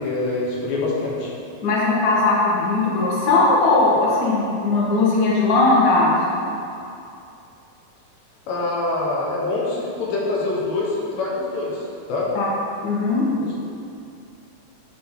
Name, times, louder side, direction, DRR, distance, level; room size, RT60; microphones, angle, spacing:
voice 1, 0.0-1.3 8.5-12.3 13.4-13.6, left 2 dB, 65° left, -4 dB, 2.1 m, -25 dB
voice 2, 1.6-6.4 12.3-12.4 12.8-13.3, left 3 dB, 80° left, -5 dB, 0.9 m, -18 dB
10.0 x 4.3 x 3.7 m, 2.6 s
omnidirectional pair, 4.0 m